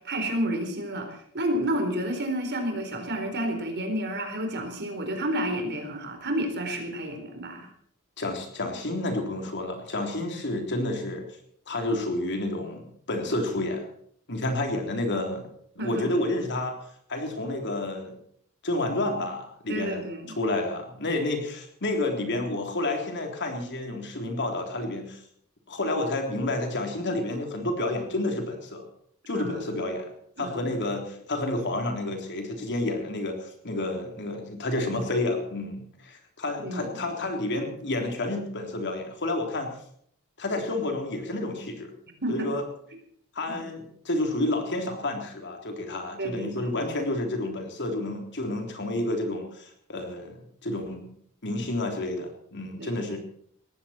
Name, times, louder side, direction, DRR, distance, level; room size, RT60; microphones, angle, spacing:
voice 1, 0.0-7.7 15.8-16.2 19.7-20.3 29.3-29.9 30.4-30.7 36.6-37.1 42.2-42.5 43.5-43.7 46.2-46.7 52.8-53.0, right 1 dB, 50° right, 5 dB, 4.0 m, -31 dB
voice 2, 8.2-11.2 11.7-13.9 14.3-15.5 15.8-16.8 17.1-18.2 18.6-20.0 20.3-25.2 25.7-28.8 29.3-30.1 30.4-39.7 40.4-41.9 42.3-42.6 43.4-51.1 51.4-53.2, left 2 dB, 55° left, 4 dB, 3.6 m, -30 dB
20.0 x 15.0 x 4.5 m, 0.65 s
head